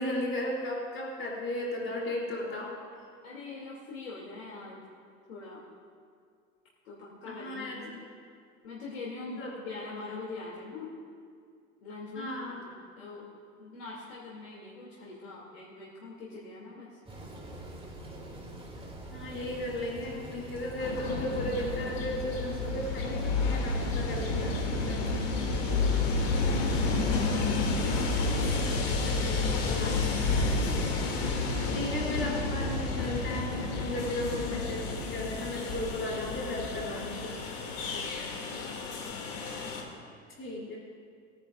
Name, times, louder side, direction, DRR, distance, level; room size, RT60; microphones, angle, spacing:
voice 1, 0.0-2.7 7.3-8.0 9.4-9.5 12.1-12.6 19.1-25.0 29.0-31.0 31.7-37.3 40.4-40.8, left 1 dB, 30° left, -3 dB, 3.2 m, -35 dB
voice 2, 3.2-4.9 5.3-5.7 6.8-8.0 8.6-11.0 11.8-17.0 25.1-25.6 26.4-28.3 34.0-34.1 37.9-39.1 39.6-39.9, left 3 dB, 80° left, -6 dB, 2.8 m, -44 dB
sound 1, 17.1-30.3, right 1 dB, 15° right, 2.5 m, -44 dB
Train, 20.8-39.8, left 3 dB, 65° left, 2.6 m, -30 dB
21.5 x 10.5 x 2.5 m, 2.3 s
hypercardioid pair, 90°, 39 cm